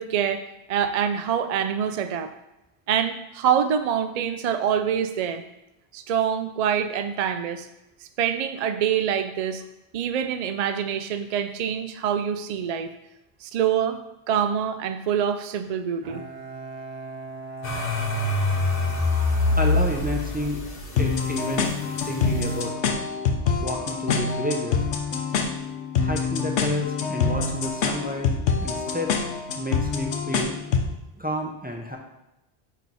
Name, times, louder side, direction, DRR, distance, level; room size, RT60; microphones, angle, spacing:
voice 1, 0.0-2.3 2.9-5.4 5.9-7.7 8.2-9.6 9.9-12.9 13.4-14.0 14.3-16.2, right 8 dB, 55° right, 9 dB, 0.4 m, -25 dB
Bowed string instrument, 16.0-20.9, right 2 dB, 90° right, 1.1 m, -39 dB
sound 1, 17.6-22.6, left 2 dB, 55° left, 1.2 m, -25 dB
voice 2, 19.6-20.6 21.0-21.7 22.1-22.7 23.6-24.8 26.0-28.3 28.6-29.1 29.6-30.6 31.2-32.0, equal, 10° right, 1 dB, 0.6 m, -30 dB
sound 2, 21.0-30.9, left 5 dB, 90° left, 1.0 m, -26 dB
9.0 x 3.1 x 4.1 m, 0.90 s
omnidirectional pair, 1.1 m